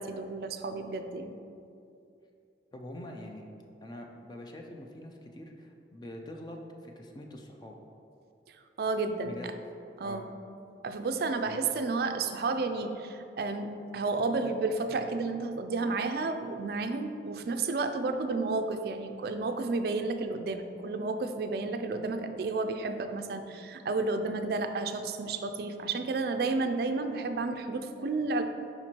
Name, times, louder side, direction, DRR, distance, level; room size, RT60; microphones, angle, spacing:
voice 1, 0.0-1.4 8.8-9.3 10.0-10.3 10.8-28.4, right 3 dB, 55° right, 7 dB, 0.4 m, -31 dB
voice 2, 2.7-3.5 3.8-7.7 9.2-9.5 10.0-10.3 11.4-11.6, left 1 dB, 25° left, 2 dB, 0.4 m, -44 dB
5.0 x 4.5 x 4.3 m, 2.6 s
head